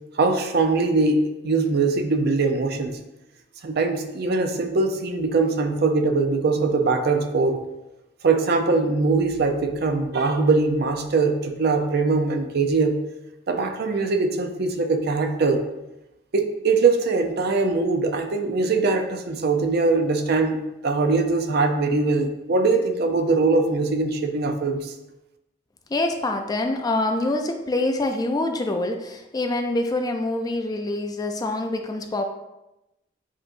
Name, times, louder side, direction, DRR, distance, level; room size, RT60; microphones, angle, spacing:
voice 1, 0.2-3.0 3.6-7.6 8.2-13.0 13.5-15.6 16.3-24.9, right 3 dB, 55° right, 5 dB, 0.5 m, -22 dB
voice 2, 25.9-32.2, left 2 dB, 20° left, 5 dB, 0.3 m, -25 dB
7.2 x 2.9 x 2.5 m, 0.94 s
head